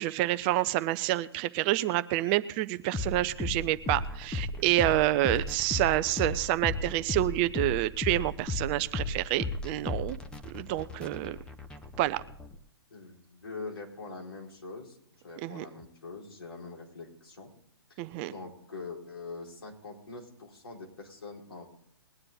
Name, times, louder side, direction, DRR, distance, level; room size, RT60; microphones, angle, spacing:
voice 1, 0.0-10.2 10.5-11.4 12.0-12.2 15.4-15.6 18.0-18.3, right 16 dB, 25° right, 14 dB, 0.4 m, -28 dB
sound 1, 2.9-12.6, left 3 dB, 5° left, 0.9 m, -35 dB
voice 2, 12.9-15.0 15.2-17.5 17.9-18.0 18.2-21.7, left 3 dB, 70° left, -2 dB, 4.5 m, -43 dB
20.5 x 9.8 x 3.9 m, 0.71 s
figure-of-eight pair, 125°, 13 cm